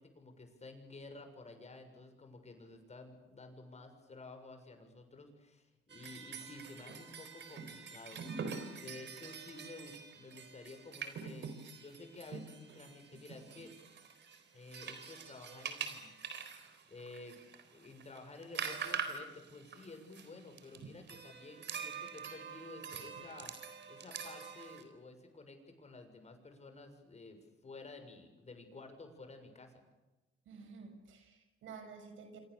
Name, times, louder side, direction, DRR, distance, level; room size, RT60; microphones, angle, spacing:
voice 1, 0.0-13.8 14.5-16.1 16.9-17.4 17.7-23.5 23.9-29.8, left 3 dB, 35° left, 6 dB, 6.7 m, -52 dB
sound 1, 5.9-24.8, right 6 dB, 65° right, 4.1 m, -45 dB
voice 2, 30.5-32.4, right 5 dB, 80° right, 7 dB, 6.4 m, -51 dB
28.0 x 26.5 x 7.0 m, 1.1 s
cardioid pair, 90°, 20 cm